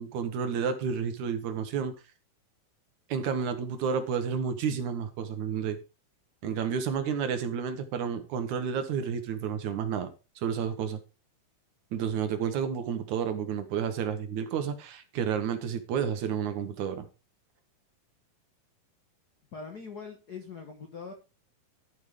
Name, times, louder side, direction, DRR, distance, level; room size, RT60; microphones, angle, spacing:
voice 1, 0.0-1.9 3.1-5.8 6.4-10.1 10.4-11.0 11.9-17.1, right 7 dB, 65° right, 2.3 m, -31 dB
voice 2, 19.5-21.1, left 5 dB, 75° left, 0.9 m, -42 dB
12.5 x 5.5 x 4.9 m
omnidirectional pair, 3.9 m